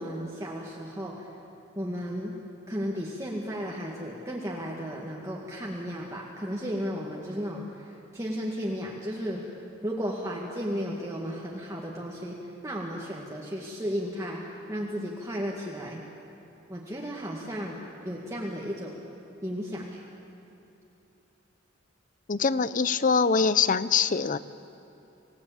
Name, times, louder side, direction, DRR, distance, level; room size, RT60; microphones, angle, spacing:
voice 1, 0.0-1.3 1.8-2.4 2.7-9.5 9.8-12.4 12.6-16.0 16.7-19.0 19.4-20.0, equal, 15° right, -3 dB, 1.9 m, -34 dB
voice 2, 22.3-24.4, left 5 dB, 40° left, 15 dB, 0.6 m, -23 dB
27.0 x 17.5 x 8.6 m, 2.9 s
head